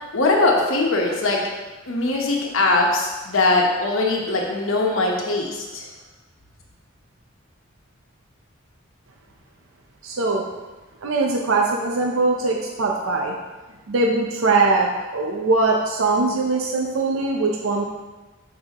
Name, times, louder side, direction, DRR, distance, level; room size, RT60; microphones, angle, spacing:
voice 1, 0.1-1.4 1.9-5.9, left 2 dB, 75° left, -1 dB, 1.1 m, -21 dB
voice 2, 10.0-10.4 11.0-13.4 13.9-17.8, right 3 dB, 75° right, 0 dB, 0.6 m, -21 dB
6.6 x 5.5 x 2.9 m, 1.2 s
head